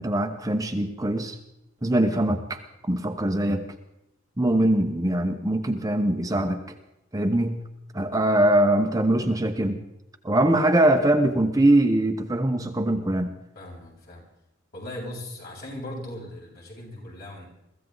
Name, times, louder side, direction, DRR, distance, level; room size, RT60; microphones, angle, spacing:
voice 1, 0.0-1.4 1.8-3.6 4.4-6.6 7.1-7.6 7.9-9.8 10.2-13.3, right 1 dB, 20° right, 5 dB, 1.0 m, -22 dB
voice 2, 13.5-14.2 14.7-17.5, left 1 dB, 50° left, -3 dB, 7.4 m, -38 dB
23.5 x 15.0 x 4.0 m, 0.89 s
head